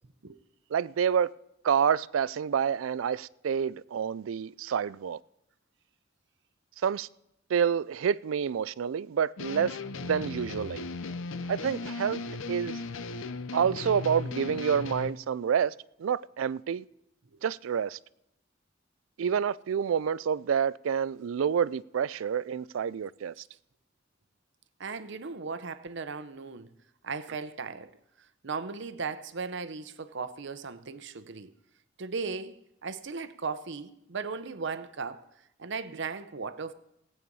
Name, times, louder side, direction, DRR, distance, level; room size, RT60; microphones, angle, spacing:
voice 1, 0.7-1.3 1.6-5.2 6.8-7.1 7.5-9.8 10.0-10.8 11.5-12.2 12.5-12.8 13.5-15.7 16.0-16.8 17.4-18.0 19.2-23.3, right 7 dB, 85° right, 0.4 m, -28 dB
sound 1, 9.4-15.1, left 3 dB, 75° left, 0.7 m, -37 dB
voice 2, 24.8-26.7 27.0-27.9 28.4-31.5 32.0-35.3 35.6-36.7, right 4 dB, 65° right, 0.8 m, -37 dB
17.5 x 8.6 x 5.4 m
head